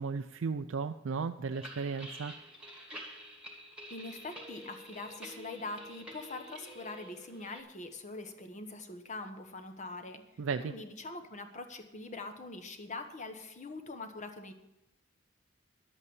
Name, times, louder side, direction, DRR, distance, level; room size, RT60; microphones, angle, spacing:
voice 1, 0.0-2.3 10.4-10.7, right 5 dB, 90° right, 8 dB, 0.4 m, -35 dB
sound 1, 1.5-7.6, equal, 5° right, 1.9 m, -48 dB
voice 2, 3.9-10.2 10.6-14.5, left 3 dB, 40° left, 7 dB, 1.2 m, -43 dB
11.0 x 8.2 x 7.0 m, 0.91 s
head